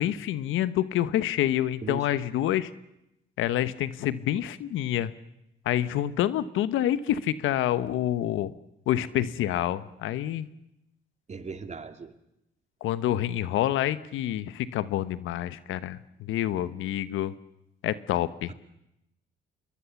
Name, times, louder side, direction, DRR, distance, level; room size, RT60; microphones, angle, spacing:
voice 1, 0.0-2.7 3.4-5.1 5.6-8.5 8.9-10.5 12.8-17.3 17.8-18.5, left 12 dB, 90° left, 15 dB, 1.1 m, -27 dB
voice 2, 11.3-12.1, right 4 dB, 35° right, 8 dB, 2.3 m, -37 dB
26.5 x 21.5 x 7.1 m, 0.83 s
cardioid pair, 90°, 20 cm